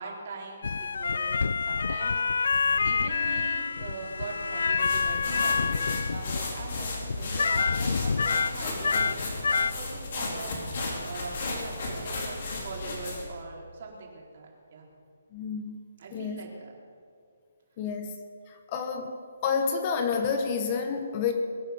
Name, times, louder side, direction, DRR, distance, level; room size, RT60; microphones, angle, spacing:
voice 1, 0.0-14.9 16.0-16.7, right 3 dB, 45° right, -1 dB, 3.9 m, -42 dB
sound 1, 0.6-9.7, left 5 dB, 70° left, 0.4 m, -27 dB
sound 2, 4.8-13.4, left 2 dB, 45° left, 4.0 m, -35 dB
voice 2, 15.3-15.8 16.1-16.5 17.8-18.1 18.5-19.1 19.4-21.3, left 6 dB, 25° left, 6 dB, 1.0 m, -29 dB
22.0 x 9.0 x 7.1 m, 2.2 s
hypercardioid pair, 170°, 0 cm